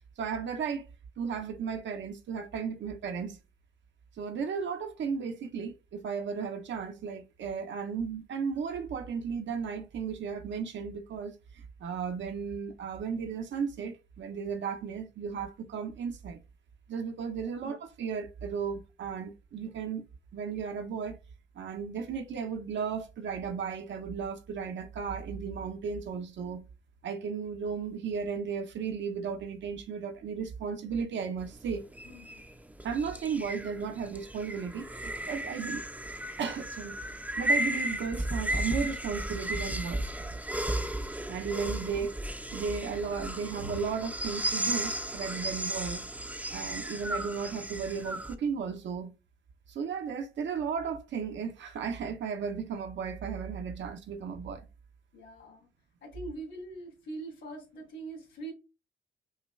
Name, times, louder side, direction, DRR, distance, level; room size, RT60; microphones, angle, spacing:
voice 1, 0.2-0.9 1.2-3.4 4.2-16.4 16.9-20.0 20.3-21.2 21.6-26.7 27.0-31.8 32.8-35.8 36.4-37.0 37.4-40.1 41.3-42.1 42.5-46.1 46.5-49.2 49.7-54.7, right 6 dB, 70° right, 0.8 m, -35 dB
voice 2, 17.3-17.8 32.0-32.4 41.7-42.0 55.1-55.7 56.0-58.5, right 2 dB, 70° left, 2.2 m, -43 dB
sound 1, 31.4-48.3, right 1 dB, 5° right, 0.5 m, -35 dB
5.6 x 2.3 x 3.2 m
cardioid pair, 100°, 20 cm